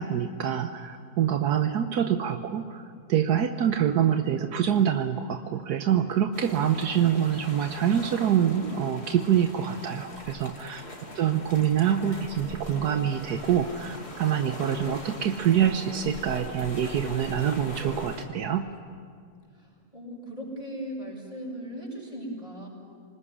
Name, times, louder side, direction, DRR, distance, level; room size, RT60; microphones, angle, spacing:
voice 1, 0.0-10.8 11.1-18.7, right 9 dB, 80° right, 6 dB, 1.5 m, -25 dB
sound 1, 6.3-18.3, left 2 dB, 40° left, 2.9 m, -42 dB
voice 2, 11.0-11.9 19.5-22.7, equal, 25° right, -1 dB, 7.1 m, -39 dB
26.5 x 20.0 x 9.9 m, 2.1 s
omnidirectional pair, 1.7 m